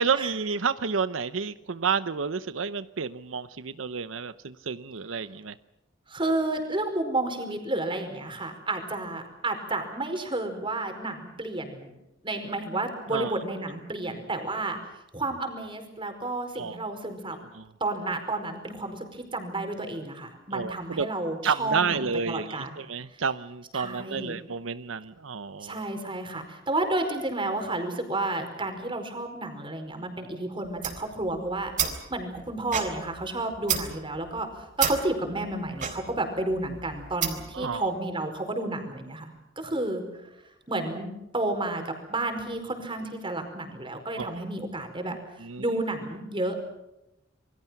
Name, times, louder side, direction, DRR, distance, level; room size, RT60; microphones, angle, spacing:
voice 1, 0.0-5.5 13.1-13.3 16.6-16.8 17.5-17.6 20.5-21.1 21.4-25.8 37.5-37.9 44.2-44.4 45.4-45.6, right 5 dB, 85° right, 14 dB, 0.8 m, -30 dB
voice 2, 6.1-11.9 12.2-14.8 15.1-17.4 17.8-22.8 23.1-23.2 23.7-24.4 25.6-31.7 32.1-34.5 34.8-39.3 39.6-40.0 40.7-45.2 45.6-46.6, right 2 dB, 25° right, 5 dB, 5.0 m, -31 dB
sound 1, 30.6-37.6, right 8 dB, 40° right, 3.9 m, -32 dB
27.5 x 23.0 x 5.9 m, 0.90 s
head